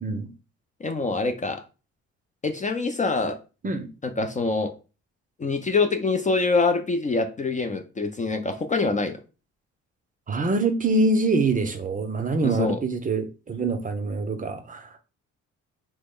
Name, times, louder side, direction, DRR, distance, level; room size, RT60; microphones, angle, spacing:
voice 1, 0.8-1.6 2.4-3.4 4.0-4.7 5.4-9.2 12.4-12.8, left 3 dB, 25° left, 0.4 m, -25 dB
voice 2, 10.3-14.9, right 3 dB, 25° right, 0.5 m, -25 dB
3.1 x 2.0 x 3.5 m
cardioid pair, 90°, 30 cm